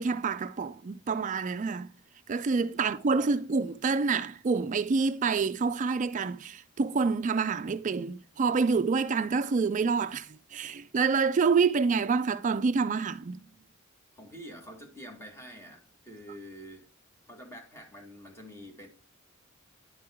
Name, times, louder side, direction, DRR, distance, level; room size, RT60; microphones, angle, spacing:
voice 1, 0.0-1.9 2.3-13.4, right 4 dB, 40° right, 0.4 m, -27 dB
voice 2, 2.7-3.4 14.2-16.9 17.2-18.9, equal, 15° left, 1.9 m, -47 dB
10.5 x 4.5 x 3.6 m
head